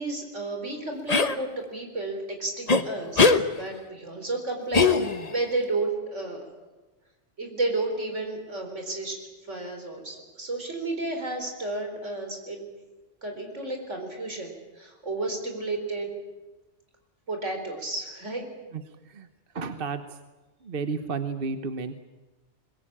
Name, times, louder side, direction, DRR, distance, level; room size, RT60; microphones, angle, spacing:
voice 1, 0.0-6.4 7.4-9.2 9.5-12.7 13.2-16.1 17.3-18.5, right 2 dB, 80° right, 4 dB, 4.7 m, -32 dB
sound 1, 1.1-1.4 2.7-2.8 3.2-3.4 4.7-5.4, left 4 dB, 35° left, 1.1 m, -20 dB
voice 2, 19.5-20.0 20.6-21.9, right 4 dB, 50° right, 9 dB, 1.2 m, -31 dB
22.0 x 21.5 x 8.8 m, 1.1 s
omnidirectional pair, 1.2 m